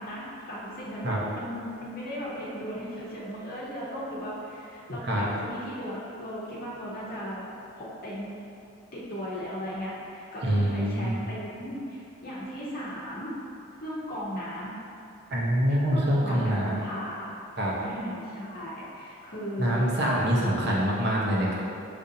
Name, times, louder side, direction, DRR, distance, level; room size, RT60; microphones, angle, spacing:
voice 1, 0.0-8.3 8.9-13.3 13.8-14.7 15.9-17.4 17.8-19.8, equal, 45° left, -6 dB, 0.8 m, -37 dB
voice 2, 10.4-11.1 15.3-16.8 17.6-17.7 19.6-21.5, equal, 55° right, -4 dB, 0.8 m, -25 dB
6.6 x 2.6 x 2.7 m, 2.6 s
head